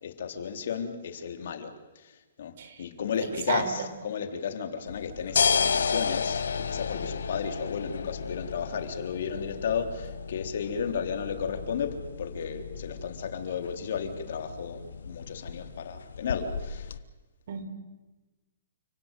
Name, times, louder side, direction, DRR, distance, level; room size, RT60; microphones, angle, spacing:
voice 1, 0.0-1.7 2.4-2.5 2.8-14.8 15.1-16.9, left 6 dB, 65° left, 6 dB, 3.6 m, -33 dB
voice 2, 3.5-3.9 17.5-17.6, right 7 dB, 60° right, 8 dB, 5.3 m, -32 dB
sound 1, 4.9-17.0, left 6 dB, 85° left, 1.4 m, -33 dB
30.0 x 17.0 x 9.2 m, 1.1 s
hypercardioid pair, 150°, 0 cm